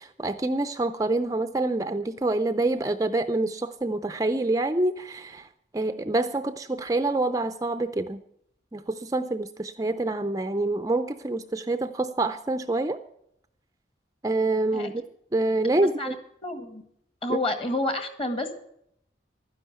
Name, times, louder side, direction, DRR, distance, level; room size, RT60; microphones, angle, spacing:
voice 1, 0.0-5.5 5.7-8.2 8.7-13.0 14.2-15.0 15.3-16.1 17.3-17.4, right 2 dB, 20° right, 10 dB, 0.4 m, -26 dB
voice 2, 16.4-16.8 17.2-18.5, left 2 dB, 30° left, 8 dB, 1.7 m, -29 dB
12.5 x 10.0 x 8.1 m, 0.72 s
head